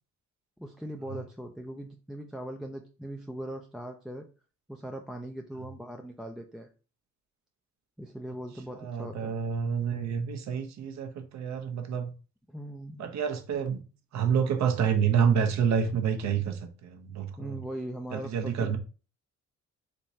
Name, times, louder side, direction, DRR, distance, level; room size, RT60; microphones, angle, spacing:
voice 1, 0.6-4.3 4.7-6.7 8.0-9.4 12.5-13.1 17.4-18.8, right 1 dB, ahead, 0.3 m, -40 dB
voice 2, 8.7-12.1 13.0-13.8 14.1-17.6 18.1-18.8, right 7 dB, 65° right, 0.7 m, -28 dB
3.5 x 3.0 x 2.7 m
cardioid pair, 90°, 30 cm